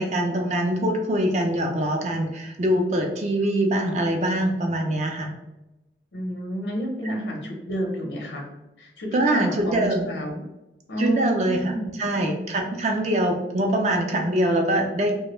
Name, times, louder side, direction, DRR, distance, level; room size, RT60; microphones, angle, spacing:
voice 1, 0.0-5.3 9.1-10.1 11.0-15.2, right 1 dB, 40° right, 2 dB, 0.3 m, -23 dB
voice 2, 6.1-8.5 8.8-10.4 10.9-12.0, equal, 85° left, 0 dB, 0.6 m, -30 dB
2.2 x 2.0 x 3.0 m, 0.97 s
head